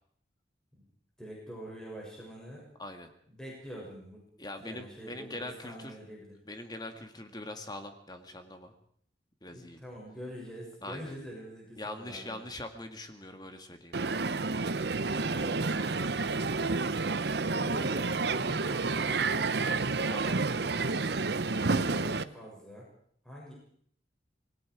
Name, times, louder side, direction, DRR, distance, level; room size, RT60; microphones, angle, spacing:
voice 1, 1.2-2.7 3.3-4.2 4.6-6.4 9.5-12.4 15.2-16.0 17.5-19.6 21.4-22.9 23.2-23.5, equal, 5° left, -4 dB, 6.9 m, -45 dB
voice 2, 2.8-3.1 4.4-5.9 6.5-8.7 9.4-9.8 10.8-11.1 11.8-14.2 20.1-20.4, left 2 dB, 20° left, 6 dB, 1.9 m, -42 dB
Crowd, 13.9-22.2, right 3 dB, 60° right, 0.8 m, -30 dB
26.5 x 20.5 x 4.9 m, 0.64 s
head